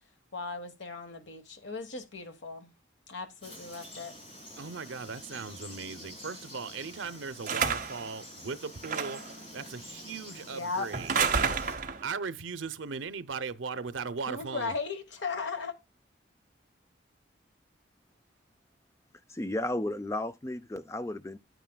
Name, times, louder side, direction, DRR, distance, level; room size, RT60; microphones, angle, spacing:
voice 1, 0.3-2.7 3.1-4.2 10.5-10.9 14.3-15.7, left 4 dB, 75° left, 1.3 m, -37 dB
Frog, 3.4-11.8, left 1 dB, 30° left, 2.8 m, -48 dB
voice 2, 4.6-14.7, right 5 dB, 90° right, 0.6 m, -38 dB
sound 1, 7.5-8.1 8.8-9.3 10.9-12.1, right 6 dB, 45° right, 0.9 m, -29 dB
voice 3, 19.3-21.4, left 1 dB, 15° left, 0.4 m, -33 dB
10.5 x 9.2 x 2.2 m
head